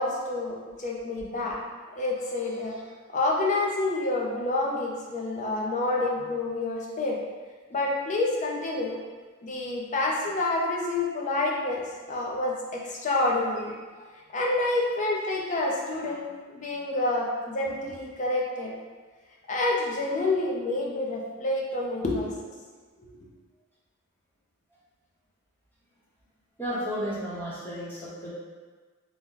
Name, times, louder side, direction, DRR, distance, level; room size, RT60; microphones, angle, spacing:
voice 1, 0.0-1.6 1.9-2.8 3.1-7.2 7.7-8.9 9.4-14.0 14.3-18.7 19.5-22.3 23.0-23.1, left 2 dB, 35° left, -2 dB, 0.5 m, -28 dB
voice 2, 26.6-28.3, equal, 10° left, -9 dB, 0.8 m, -33 dB
2.8 x 2.1 x 3.7 m, 1.4 s
head